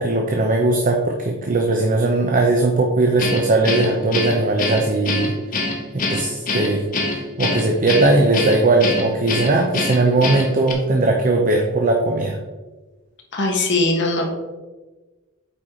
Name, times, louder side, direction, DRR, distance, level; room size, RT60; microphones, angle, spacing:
voice 1, 0.0-5.3 5.9-6.8 7.4-12.4, right 2 dB, 40° right, 2 dB, 0.7 m, -19 dB
Guitar, 3.2-10.7, left 2 dB, 40° left, 1.2 m, -25 dB
voice 2, 13.3-14.3, left 2 dB, 55° left, 1 dB, 1.5 m, -20 dB
8.4 x 4.8 x 3.7 m, 1.2 s
head